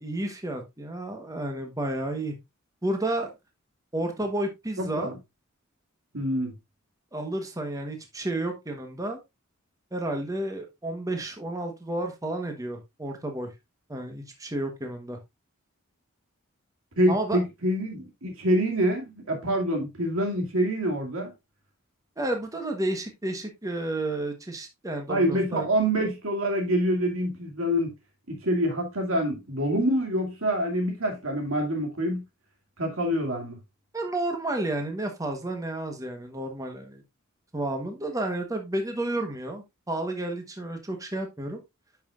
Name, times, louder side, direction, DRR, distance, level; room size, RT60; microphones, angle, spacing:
voice 1, 0.0-2.4 2.8-3.3 3.9-5.1 7.1-9.2 9.9-13.5 13.9-15.2 17.1-17.4 22.2-25.7 33.9-37.0 37.5-41.6, right 1 dB, 15° right, 1.1 m, -31 dB
voice 2, 4.8-5.1 6.1-6.5 17.0-21.3 25.1-27.9 28.3-32.2 32.8-33.6, equal, 80° right, 2.5 m, -26 dB
10.0 x 5.7 x 2.5 m
head